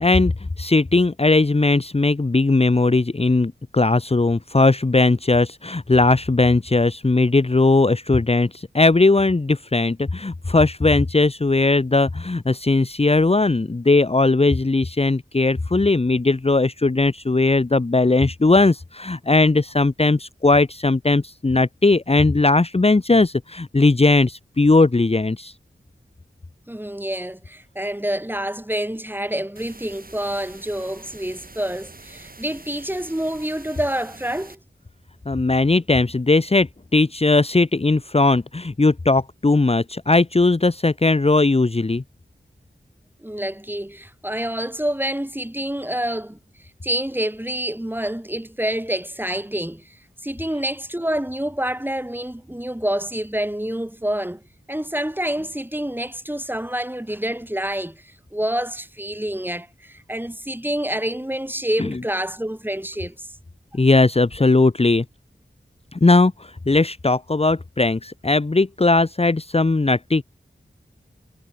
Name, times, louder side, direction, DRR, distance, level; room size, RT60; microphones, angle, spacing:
voice 1, 0.0-25.5 35.3-42.0 61.8-61.9 63.7-65.0 65.9-70.2, left 3 dB, 30° left, 0.9 m, -18 dB
voice 2, 26.7-34.6 43.2-46.4 46.8-54.4 54.7-63.3, right 1 dB, 10° right, 2.3 m, -27 dB
sound 1, 29.6-34.6, right 3 dB, 50° right, 3.8 m, -45 dB
cardioid pair, 45°, 19 cm